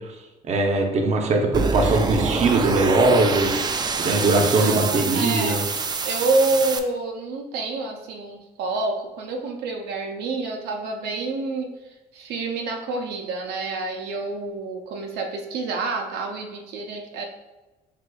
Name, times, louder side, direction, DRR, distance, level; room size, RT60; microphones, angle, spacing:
voice 1, 0.5-3.5 4.0-5.6, right 2 dB, 40° right, 2 dB, 0.7 m, -20 dB
sound 1, 1.5-6.8, right 5 dB, 25° right, 0.3 m, -26 dB
voice 2, 4.3-5.6 6.0-11.7 12.1-17.3, right 3 dB, 80° right, 2 dB, 0.6 m, -28 dB
4.9 x 3.7 x 2.3 m, 1.1 s
cardioid pair, 110°, 17 cm